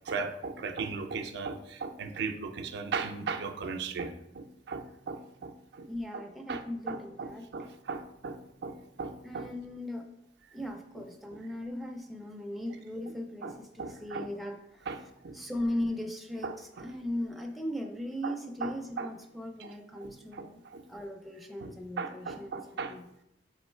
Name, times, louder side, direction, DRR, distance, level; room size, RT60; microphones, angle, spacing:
voice 1, 0.1-4.1 4.4-5.5 5.8-5.9 6.1-6.2 6.5-6.6 6.9-8.4 8.6-8.7 9.0-9.5 11.0-11.1 11.3-11.4 13.4-14.3 14.9-15.0 15.2-15.4 16.4-16.9 18.2-18.3 18.6-19.1 19.6-19.7 20.0-20.1 20.4-20.5 20.7-20.8 21.6-21.7 22.0-22.9, right 4 dB, 65° right, 5 dB, 0.4 m, -37 dB
voice 2, 5.9-7.5 9.2-10.0 10.5-14.6 15.3-16.5 16.8-20.6 20.9-23.0, left 1 dB, ahead, 2 dB, 0.4 m, -38 dB
3.7 x 3.1 x 4.3 m, 0.83 s
head